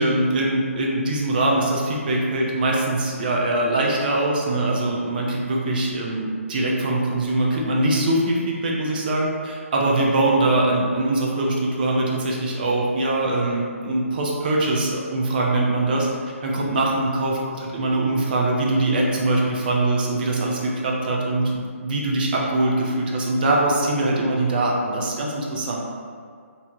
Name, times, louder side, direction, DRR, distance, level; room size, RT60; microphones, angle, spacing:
voice 1, 0.0-16.1 16.4-25.8, right 2 dB, 40° right, -2 dB, 0.5 m, -22 dB
2.6 x 2.1 x 2.9 m, 2.1 s
figure-of-eight pair, 140°, 8 cm